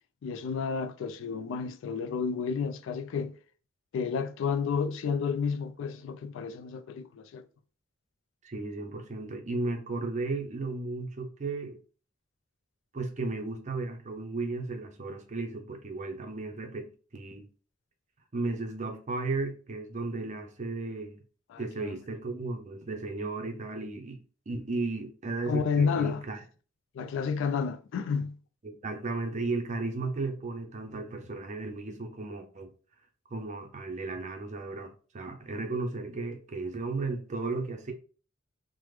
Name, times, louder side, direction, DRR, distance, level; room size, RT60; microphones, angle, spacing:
voice 1, 0.2-3.3 3.9-7.4 21.5-22.0 25.5-26.2 26.9-28.4, left 5 dB, 70° left, 0.3 m, -31 dB
voice 2, 8.4-11.8 12.9-17.5 18.3-21.2 21.6-26.4 28.6-32.7 33.3-37.9, right 3 dB, 35° right, 0.5 m, -35 dB
3.3 x 2.1 x 3.0 m
head